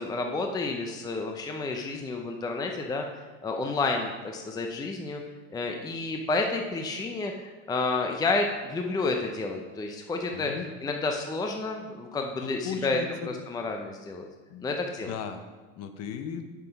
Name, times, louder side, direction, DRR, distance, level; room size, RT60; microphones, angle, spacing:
voice 1, 0.0-3.1 3.4-5.2 5.5-10.5 10.8-13.0 13.5-14.3 14.6-15.1, left 3 dB, 10° left, 3 dB, 0.6 m, -30 dB
voice 2, 10.3-10.7 12.4-13.4 14.5-14.7 15.0-15.4 15.8-16.5, left 7 dB, 40° left, 8 dB, 1.0 m, -36 dB
8.8 x 6.0 x 5.3 m, 1.3 s
supercardioid pair, 120°, 39 cm